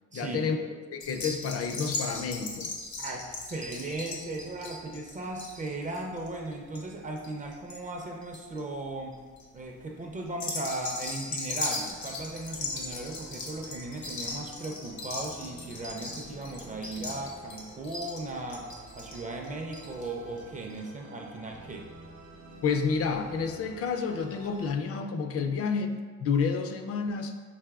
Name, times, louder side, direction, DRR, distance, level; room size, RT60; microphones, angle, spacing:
voice 1, 0.1-0.7 0.9-2.7 22.6-25.9 26.2-27.3, left 5 dB, 50° left, 6 dB, 0.4 m, -29 dB
sound 1, 1.0-7.8 8.1-8.6 9.1-9.4 10.3-20.1 20.4-20.5 20.7-20.8, left 3 dB, 70° left, 0.8 m, -38 dB
voice 2, 3.0-9.2 9.5-18.7 19.0-21.9, right 2 dB, 25° right, 1 dB, 0.4 m, -37 dB
Musical instrument, 11.9-24.7, right 2 dB, 70° right, 0.8 m, -49 dB
4.8 x 2.8 x 2.3 m, 1.5 s
cardioid pair, 90°, 30 cm